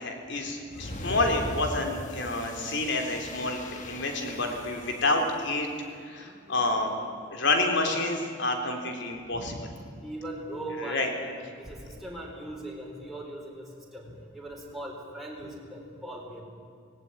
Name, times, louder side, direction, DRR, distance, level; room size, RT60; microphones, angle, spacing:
voice 1, 0.0-5.7 6.0-6.9 7.3-9.7 10.8-11.1, left 2 dB, 60° left, 4 dB, 3.5 m, -28 dB
sound 1, 0.7-5.6, left 1 dB, 40° left, 1.7 m, -40 dB
voice 2, 6.2-6.6 10.0-14.1 14.3-16.4, right 1 dB, ahead, -3 dB, 4.2 m, -39 dB
18.5 x 18.0 x 9.2 m, 2.4 s
head